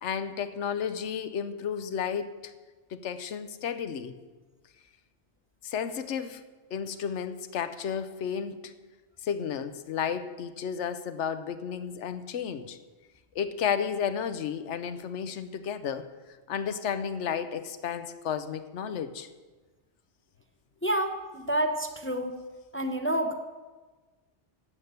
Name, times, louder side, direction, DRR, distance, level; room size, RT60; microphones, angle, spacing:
voice 1, 0.0-2.5 2.9-4.2 5.6-6.4 6.7-8.7 9.2-12.8 13.3-16.1 16.5-19.3, left 7 dB, 80° left, 11 dB, 1.1 m, -32 dB
voice 2, 20.8-22.4 22.7-23.3, right 1 dB, 15° left, 5 dB, 0.6 m, -28 dB
11.0 x 8.1 x 6.8 m, 1.3 s
omnidirectional pair, 1.2 m